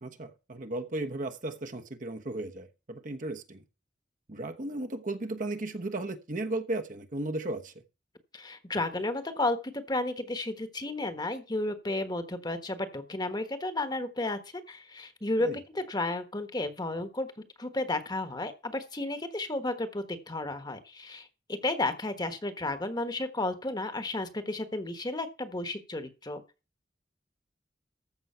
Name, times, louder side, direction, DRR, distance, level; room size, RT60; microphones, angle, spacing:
voice 1, 0.0-3.6 4.3-7.7 15.4-15.6, right 2 dB, 45° right, 1.1 m, -35 dB
voice 2, 8.3-14.4 14.7-15.5 15.7-17.3 17.6-21.3 21.6-26.4, left 2 dB, 25° left, 1.3 m, -32 dB
14.0 x 6.2 x 5.7 m
head